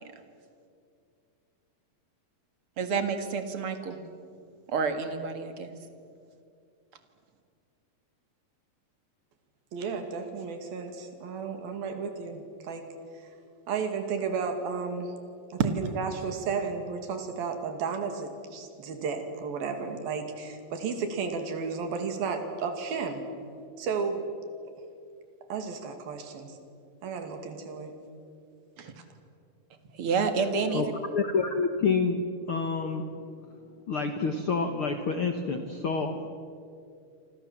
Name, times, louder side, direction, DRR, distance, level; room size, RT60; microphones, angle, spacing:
voice 1, 2.8-4.0 4.7-5.7 28.8-28.9 29.9-30.9, right 5 dB, 45° right, 7 dB, 2.4 m, -29 dB
voice 2, 9.7-12.8 13.1-13.3 13.7-15.1 15.5-23.2 23.8-24.2 25.5-26.6 27.0-27.9, right 5 dB, 80° right, 6 dB, 4.2 m, -33 dB
voice 3, 31.1-32.2 32.5-33.1 33.9-36.3, left 4 dB, 55° left, 6 dB, 1.5 m, -28 dB
28.0 x 26.0 x 7.3 m, 2.4 s
omnidirectional pair, 4.1 m